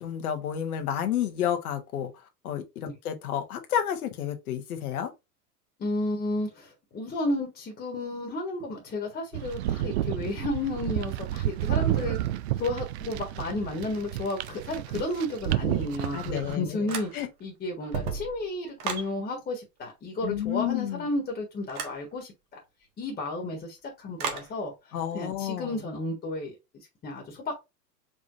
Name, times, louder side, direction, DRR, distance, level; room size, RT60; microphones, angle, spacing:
voice 1, 0.0-2.1 2.4-5.1 16.1-17.3 20.2-21.0 24.9-25.7, left 10 dB, 60° left, 1.3 m, -31 dB
voice 2, 5.8-12.2 12.6-17.1 17.4-22.3 23.0-27.5, left 2 dB, 20° left, 1.5 m, -32 dB
sound 1, 9.3-16.6, right 13 dB, 45° right, 0.4 m, -30 dB
sound 2, 16.9-17.5 17.8-19.1 21.7-22.0 24.2-24.5, right 6 dB, 60° right, 1.4 m, -34 dB
5.0 x 3.7 x 2.5 m
figure-of-eight pair, 90°, 49 cm